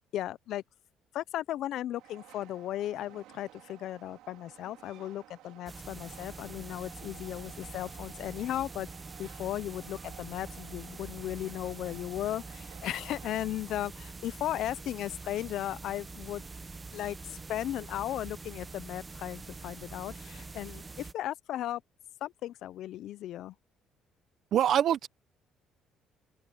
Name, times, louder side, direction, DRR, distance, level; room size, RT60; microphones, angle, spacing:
voice 1, 0.1-0.6 1.1-8.9 9.2-16.4 16.9-21.8 22.2-23.5, left 13 dB, 70° left, 0.6 m, -36 dB
Train, 1.9-13.8, right 15 dB, 85° right, 5.1 m, -55 dB
sound 1, 5.7-21.1, right 3 dB, 25° right, 0.9 m, -45 dB
voice 2, 24.5-25.1, right 10 dB, 60° right, 0.8 m, -24 dB
open air
cardioid pair, 100°, 0 cm